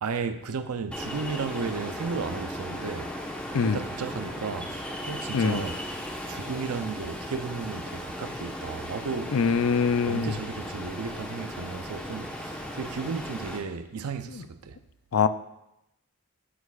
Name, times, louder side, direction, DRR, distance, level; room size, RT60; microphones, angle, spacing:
voice 1, 0.0-3.1 3.6-5.8 6.3-9.4 10.0-14.8, right 5 dB, 90° right, 0.5 m, -34 dB
Ocean, 0.9-13.6, equal, 5° left, 1.1 m, -36 dB
voice 2, 9.3-10.3 15.1-15.3, left 6 dB, 70° left, 0.4 m, -23 dB
9.4 x 8.3 x 2.4 m
head